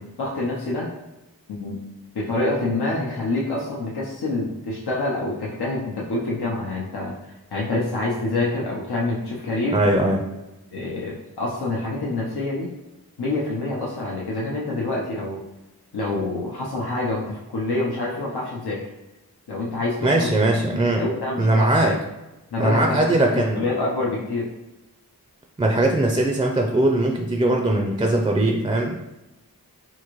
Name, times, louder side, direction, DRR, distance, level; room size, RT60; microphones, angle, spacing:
voice 1, 0.2-0.9 1.5-1.8 2.1-9.8 10.7-12.7 13.2-15.4 15.9-18.8 19.5-20.5 21.0-21.9 22.5-24.5, left 2 dB, 85° left, -5 dB, 0.7 m, -26 dB
voice 2, 9.7-10.2 20.0-21.0 21.4-21.9 22.6-23.6 25.6-29.0, right 1 dB, 15° right, 1 dB, 0.4 m, -20 dB
3.7 x 2.5 x 3.0 m, 1.0 s
wide cardioid pair, 45°, 38 cm